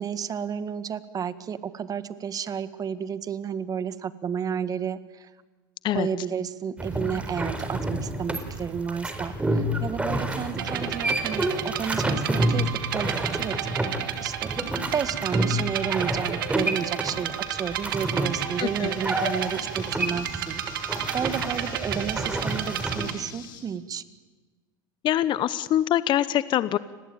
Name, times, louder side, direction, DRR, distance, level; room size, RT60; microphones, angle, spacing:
voice 1, 0.0-5.3 5.9-13.7 14.2-14.5 14.9-24.0, right 7 dB, 35° right, 13 dB, 1.8 m, -32 dB
sound 1, 6.8-23.1, right 1 dB, 10° right, 4.4 m, -29 dB
sound 2, 10.6-23.1, right 10 dB, 85° right, 2.6 m, -32 dB
sound 3, 16.6-23.6, left 9 dB, 75° left, 5.6 m, -48 dB
voice 2, 18.6-19.0 25.0-26.8, left 12 dB, 45° left, 16 dB, 1.0 m, -24 dB
30.0 x 21.0 x 9.2 m, 1.3 s
hypercardioid pair, 90°, 11 cm